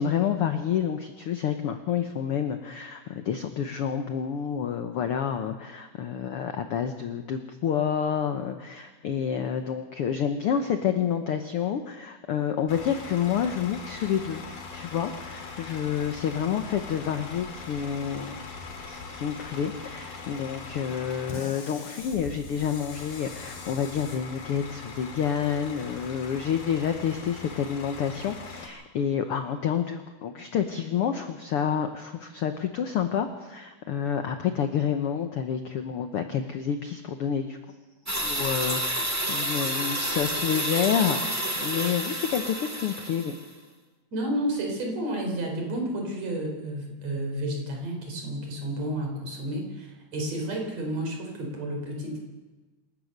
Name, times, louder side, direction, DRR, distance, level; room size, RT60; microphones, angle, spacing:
voice 1, 0.0-14.4 14.7-18.4 18.8-37.6 38.2-43.3, left 8 dB, 70° left, 7 dB, 1.4 m, -29 dB
Bus / Idling, 12.7-28.7, left 4 dB, 85° left, 4.5 m, -41 dB
sound 1, 38.1-43.5, right 1 dB, 10° right, 0.9 m, -29 dB
voice 2, 44.1-52.2, right 1 dB, 50° right, 1 dB, 5.3 m, -31 dB
27.5 x 14.5 x 6.7 m, 1.3 s
omnidirectional pair, 3.8 m